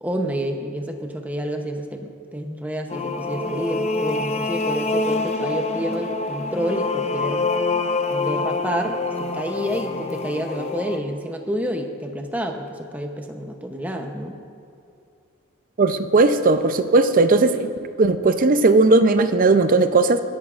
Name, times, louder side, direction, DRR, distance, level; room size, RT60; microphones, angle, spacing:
voice 1, 0.0-7.5 8.1-14.4, equal, 5° right, 4 dB, 0.8 m, -29 dB
sound 1, 2.9-11.0, left 3 dB, 30° left, 0.5 m, -26 dB
voice 2, 15.8-17.7 18.0-20.2, right 3 dB, 40° right, 10 dB, 0.5 m, -17 dB
21.5 x 11.0 x 2.5 m, 2.5 s
head